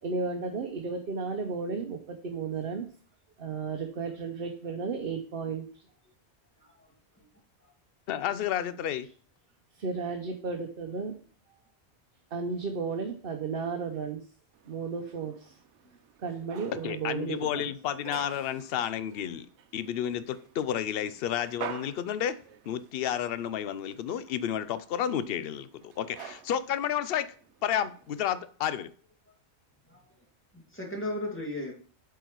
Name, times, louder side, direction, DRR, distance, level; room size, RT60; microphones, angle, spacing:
voice 1, 0.0-2.9 3.4-5.8 9.8-11.1 12.3-14.2 14.6-15.5 16.2-17.7, right 5 dB, 60° right, 4 dB, 1.0 m, -34 dB
voice 2, 6.6-7.3 7.6-7.7 15.8-16.0 28.7-28.8 29.8-30.3 30.5-31.7, left 1 dB, 10° left, -2 dB, 2.2 m, -38 dB
voice 3, 8.1-9.1 16.8-19.5 19.7-22.4 22.7-27.3 27.6-28.9, left 10 dB, 65° left, 14 dB, 0.8 m, -31 dB
sound 1, 14.5-28.3, right 9 dB, 90° right, 0.9 m, -49 dB
7.8 x 4.8 x 4.5 m, 0.43 s
omnidirectional pair, 1.1 m